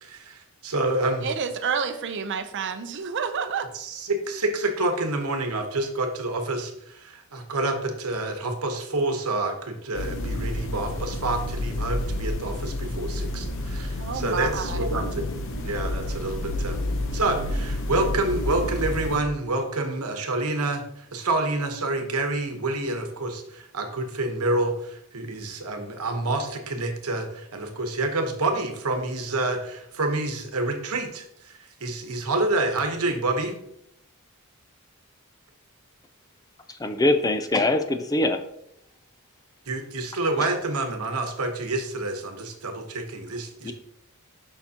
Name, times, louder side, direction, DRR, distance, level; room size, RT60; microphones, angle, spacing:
voice 1, 0.0-1.3 3.7-15.3 15.6-16.8 17.1-33.6 39.7-43.7, right 2 dB, 75° right, 5 dB, 1.1 m, -28 dB
voice 2, 1.2-3.7 13.9-14.8, right 6 dB, 55° right, 9 dB, 0.6 m, -29 dB
sound 1, 9.9-19.2, left 1 dB, 60° left, 0.8 m, -30 dB
voice 3, 36.7-38.4 43.6-43.7, left 2 dB, 15° left, 8 dB, 0.4 m, -23 dB
6.9 x 5.7 x 2.8 m, 0.76 s
head